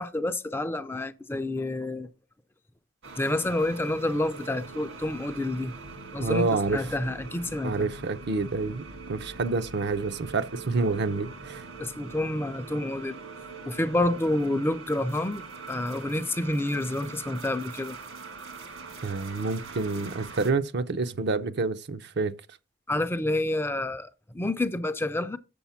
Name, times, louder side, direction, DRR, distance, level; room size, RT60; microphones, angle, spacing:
voice 1, 0.0-2.1 3.2-5.7 6.1-7.9 11.8-13.2 13.7-18.0 22.9-25.4, left 1 dB, 10° left, 0.5 m, -29 dB
sound 1, 3.0-20.5, right 4 dB, 75° right, 1.8 m, -43 dB
voice 2, 6.2-6.8 7.6-8.8 9.1-11.7 19.0-22.3, right 3 dB, 60° right, 0.6 m, -28 dB
7.0 x 6.5 x 5.7 m
head